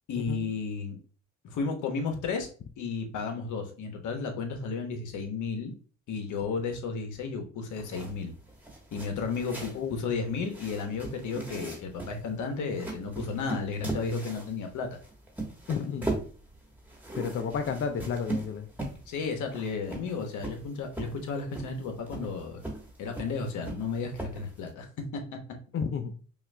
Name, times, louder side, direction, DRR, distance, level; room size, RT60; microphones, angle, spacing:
voice 1, 0.1-1.0 1.4-2.5 2.8-5.7 6.1-8.3 8.9-14.9 19.1-22.6 23.0-24.9 25.1-25.2, left 4 dB, 75° left, 4 dB, 1.0 m, -33 dB
sound 1, 7.7-24.7, right 2 dB, 5° right, 1.3 m, -40 dB
voice 2, 15.7-16.1 17.2-18.7 25.7-26.1, left 6 dB, 45° left, 6 dB, 0.5 m, -31 dB
5.5 x 2.4 x 2.2 m, 0.40 s
cardioid pair, 90°, 30 cm